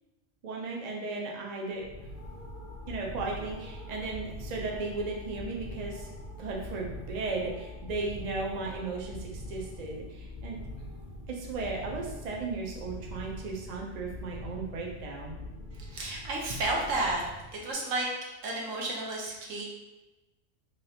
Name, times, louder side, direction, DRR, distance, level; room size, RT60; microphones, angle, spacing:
voice 1, 0.4-1.8 2.9-6.1 6.4-10.6 11.3-15.4, right 3 dB, 55° right, -1 dB, 0.4 m, -36 dB
sound 1, 1.7-17.7, left 1 dB, 50° left, 0.6 m, -43 dB
voice 2, 15.9-17.2 17.5-18.1 18.4-19.6, right 2 dB, 80° right, -2 dB, 1.1 m, -31 dB
3.2 x 2.4 x 2.7 m, 1.1 s
omnidirectional pair, 1.3 m